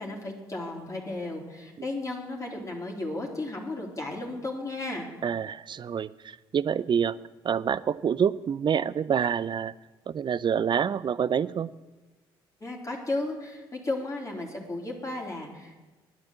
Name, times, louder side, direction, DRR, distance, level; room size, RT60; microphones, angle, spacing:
voice 1, 0.0-5.1 12.6-15.7, left 2 dB, 30° left, -1 dB, 3.3 m, -34 dB
voice 2, 5.2-7.1 7.4-9.7 10.1-11.7, right 7 dB, 45° right, 18 dB, 0.5 m, -27 dB
9.7 x 9.5 x 7.7 m, 1.2 s
supercardioid pair, 60°, 11 cm